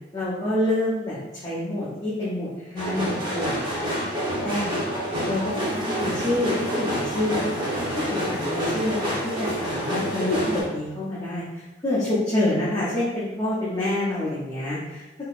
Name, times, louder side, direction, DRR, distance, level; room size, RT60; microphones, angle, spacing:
voice 1, 0.1-3.8 4.4-4.8 5.3-5.4 5.7-15.2, left 1 dB, 20° left, -9 dB, 0.7 m, -27 dB
sound 1, 2.8-10.6, equal, 25° right, 0.9 m, -28 dB
3.7 x 2.8 x 2.4 m, 1.0 s
head